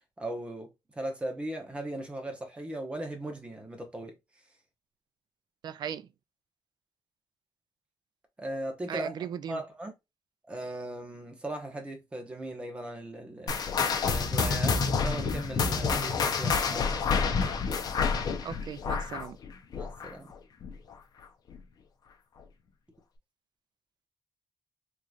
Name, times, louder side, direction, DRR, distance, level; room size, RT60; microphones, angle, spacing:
voice 1, 0.2-0.7 0.9-4.1 8.4-9.9 10.5-13.6 14.0-17.0 19.7-20.3, right 1 dB, 15° right, 1.0 m, -38 dB
voice 2, 5.6-6.1 8.9-9.6 18.4-19.4, right 8 dB, 60° right, 0.4 m, -37 dB
sound 1, 13.5-20.3 20.6-20.9 21.5-21.6 22.4-22.5, left 5 dB, 50° left, 0.7 m, -28 dB
3.8 x 3.1 x 2.4 m
wide cardioid pair, 160°, 8 cm